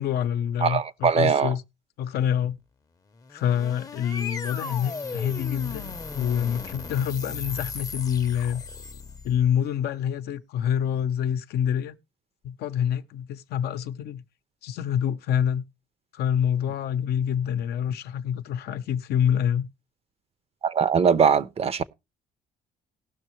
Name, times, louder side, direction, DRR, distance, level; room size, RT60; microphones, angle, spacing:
voice 1, 0.0-1.6 2.0-2.6 3.3-8.6 9.2-12.0 12.4-14.2 14.6-15.6 16.1-19.7, left 9 dB, 70° left, 0.6 m, -26 dB
voice 2, 0.6-1.5 20.6-21.8, right 6 dB, 35° right, 0.6 m, -21 dB
sound 1, 3.2-9.5, left 4 dB, 20° left, 0.6 m, -36 dB
18.5 x 6.2 x 3.0 m
cardioid pair, 110°, 17 cm